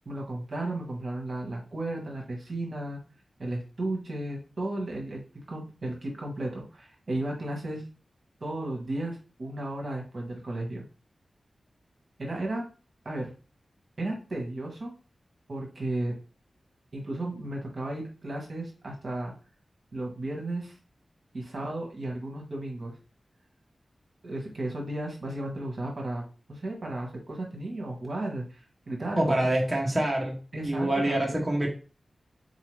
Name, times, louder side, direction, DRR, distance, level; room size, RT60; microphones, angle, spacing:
voice 1, 0.0-3.0 3.4-7.9 8.4-10.8 12.2-12.6 13.0-13.3 14.0-14.9 15.5-16.1 16.9-19.3 19.9-20.7 21.3-23.0 24.2-29.5 30.5-31.4, right 1 dB, 50° right, 0 dB, 1.1 m, -34 dB
voice 2, 29.2-30.4 30.6-31.7, right 1 dB, 10° right, -3 dB, 0.9 m, -26 dB
3.9 x 2.8 x 3.1 m, 0.35 s
wide cardioid pair, 115°, 0 cm